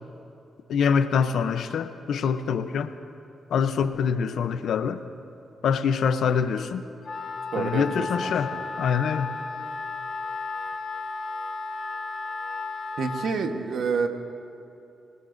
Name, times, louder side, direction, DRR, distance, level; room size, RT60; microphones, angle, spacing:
voice 1, 0.7-2.9 3.5-5.0 5.6-6.9 7.6-8.5 8.8-9.3, left 6 dB, 75° left, 11 dB, 0.7 m, -25 dB
Wind instrument woodwind instrument, 7.0-13.4, left 3 dB, 50° left, 1.0 m, -34 dB
voice 2, 7.5-8.6 13.0-14.1, right 5 dB, 70° right, 6 dB, 1.2 m, -28 dB
26.5 x 20.5 x 2.6 m, 2.8 s
cardioid pair, 65°, 0 cm